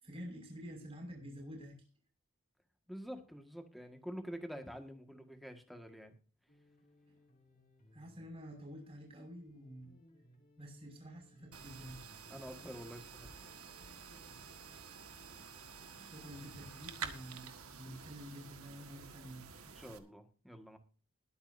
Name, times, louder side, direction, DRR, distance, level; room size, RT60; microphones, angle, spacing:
voice 1, 0.0-1.8 7.9-9.9 10.6-12.0 16.0-19.5, equal, 25° right, 2 dB, 5.9 m, -49 dB
voice 2, 2.9-6.1 12.3-13.3 19.7-20.8, equal, ahead, 5 dB, 1.6 m, -47 dB
sound 1, 6.5-17.5, left 2 dB, 35° left, 2.6 m, -65 dB
sound 2, 11.5-20.0, right 6 dB, 80° right, 1.6 m, -50 dB
21.0 x 8.8 x 2.7 m, 0.37 s
head